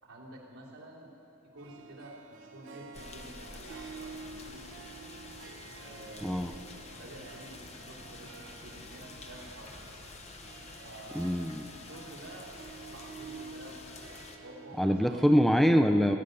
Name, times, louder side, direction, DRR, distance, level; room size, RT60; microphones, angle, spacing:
voice 1, 0.0-1.1 1.5-5.1 5.8-6.6 6.9-9.8 10.8-11.4 11.7-12.5 12.9-15.4, right 1 dB, 80° right, -5 dB, 3.4 m, -50 dB
Harp, 1.6-15.6, right 4 dB, 60° right, 0.9 m, -50 dB
sound 1, 2.9-14.4, left 3 dB, 30° left, 1.0 m, -48 dB
voice 2, 6.2-6.5 11.1-11.7 14.8-16.2, equal, ahead, 5 dB, 0.4 m, -24 dB
21.0 x 9.7 x 5.4 m, 2.8 s
head